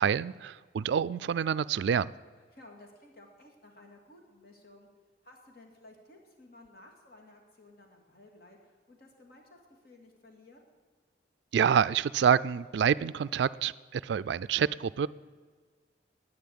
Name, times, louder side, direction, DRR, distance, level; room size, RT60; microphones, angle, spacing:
voice 1, 0.0-2.1 11.5-15.1, right 7 dB, 70° right, 18 dB, 0.3 m, -27 dB
voice 2, 2.5-4.9 5.2-10.6, left 2 dB, 55° left, 1 dB, 2.3 m, -55 dB
10.5 x 8.9 x 9.5 m, 1.5 s
head